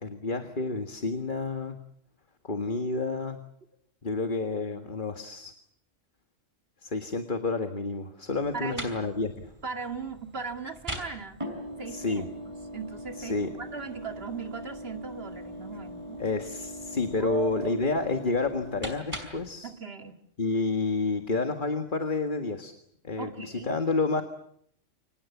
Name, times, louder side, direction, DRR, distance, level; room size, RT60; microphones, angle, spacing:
voice 1, 0.0-1.8 2.4-3.4 4.0-5.5 6.8-9.5 11.9-12.3 13.2-13.5 16.2-19.7 20.4-22.7 23.0-24.2, left 3 dB, 40° left, 6 dB, 1.9 m, -29 dB
sound 1, 8.3-19.5, equal, 25° right, 5.2 m, -41 dB
voice 2, 8.5-8.9 9.6-11.4 11.8-12.3 12.7-16.2 17.2-17.8 19.6-20.1 23.2-23.7, right 5 dB, 50° right, 6 dB, 2.4 m, -38 dB
29.0 x 25.5 x 7.2 m, 0.69 s
omnidirectional pair, 1.3 m